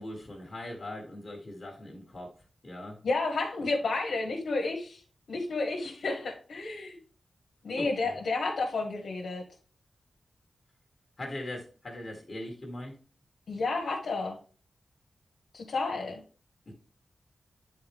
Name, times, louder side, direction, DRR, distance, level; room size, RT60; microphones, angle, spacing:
voice 1, 0.0-2.3 2.6-3.0 7.8-8.1 11.2-12.9 16.7-16.8, left 1 dB, 35° left, 1 dB, 1.6 m, -40 dB
voice 2, 3.0-5.0 5.3-7.0 7.6-9.4 13.5-14.4 15.5-16.2, left 3 dB, 75° left, -1 dB, 1.3 m, -31 dB
9.1 x 4.4 x 3.5 m, 0.37 s
wide cardioid pair, 130°, 0 cm